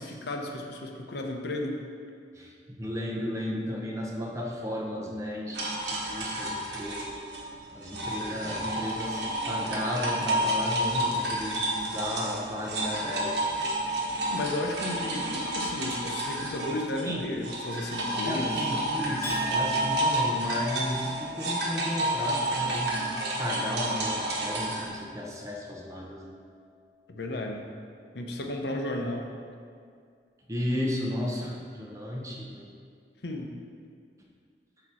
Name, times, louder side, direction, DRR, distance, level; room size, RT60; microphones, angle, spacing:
voice 1, 0.0-1.8 14.3-18.6 22.6-22.7 27.1-27.7 28.1-29.3 33.2-33.5, left 1 dB, 65° left, 3 dB, 0.7 m, -33 dB
voice 2, 2.3-7.2 7.7-13.7 17.0-17.2 18.2-26.4 30.5-32.7, left 1 dB, 20° right, -2 dB, 0.8 m, -34 dB
sound 1, 5.5-17.1 17.4-24.9, right 1 dB, 70° right, 1.2 m, -30 dB
Chink clink, 19.2-25.8 26.2-26.7, right 1 dB, 15° left, 0.8 m, -43 dB
8.0 x 2.9 x 6.2 m, 2.2 s
head